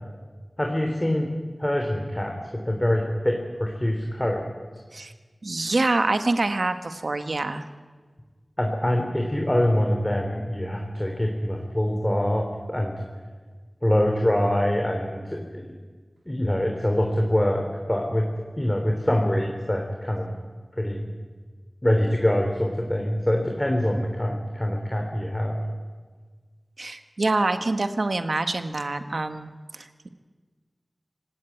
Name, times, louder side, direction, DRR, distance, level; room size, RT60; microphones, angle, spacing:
voice 1, 0.6-1.3 1.6-4.4 8.6-12.9 13.8-15.6 16.3-18.3 18.6-20.3 20.8-21.1 21.8-25.6, left 1 dB, 20° left, 2 dB, 3.5 m, -24 dB
voice 2, 5.4-7.6 26.8-30.1, right 2 dB, 80° right, 9 dB, 1.5 m, -26 dB
26.5 x 17.5 x 9.4 m, 1.5 s
wide cardioid pair, 55°, 0 cm